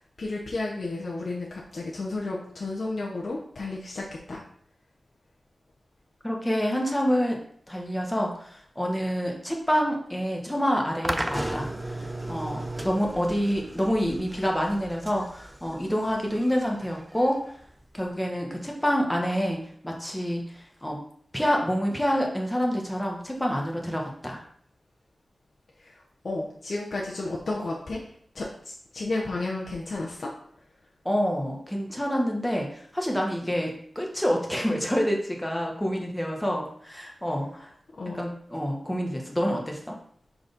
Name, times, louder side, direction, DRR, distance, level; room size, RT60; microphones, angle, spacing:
voice 1, 0.0-4.4 25.8-28.0 28.3-30.3 38.0-38.2, left 2 dB, 65° left, -4 dB, 1.0 m, -32 dB
voice 2, 6.2-7.4 7.7-12.0 12.3-17.4 17.9-21.0 21.3-24.4 31.0-37.7 38.1-39.9, equal, 10° left, 0 dB, 1.5 m, -27 dB
sound 1, 11.0-18.1, right 1 dB, 15° right, 0.6 m, -36 dB
4.7 x 4.1 x 5.3 m, 0.62 s
wide cardioid pair, 65°, 0 cm